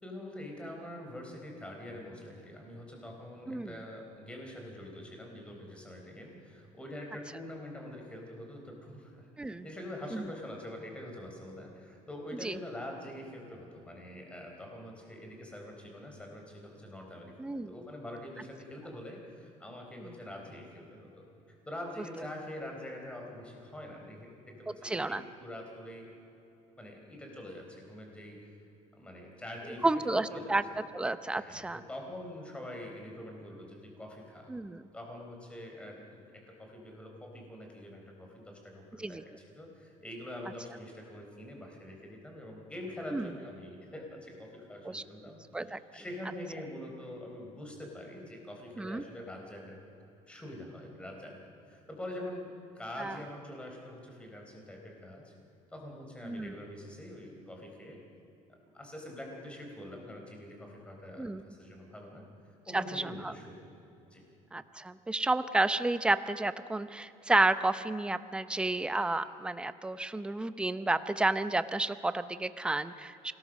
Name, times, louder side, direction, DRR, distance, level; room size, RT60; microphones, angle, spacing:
voice 1, 0.0-21.2 21.7-24.3 24.6-26.1 26.8-28.5 28.9-29.9 30.3-30.5 31.3-34.5 34.9-49.8 50.3-51.4 51.6-55.3 55.7-58.0 58.7-62.3 62.7-63.7 64.1-64.2, left 1 dB, 10° left, 1 dB, 4.1 m, -45 dB
voice 2, 17.4-17.7 20.0-20.1 24.8-25.2 29.8-30.6 30.9-31.8 34.5-34.8 39.0-39.2 43.1-43.3 44.8-45.0 45.5-45.8 48.8-49.0 53.0-53.2 56.2-56.5 61.2-61.4 62.7-63.3 64.5-73.3, right 2 dB, 5° right, 13 dB, 0.7 m, -31 dB
27.0 x 18.5 x 6.5 m, 3.0 s
cardioid pair, 150°, 13 cm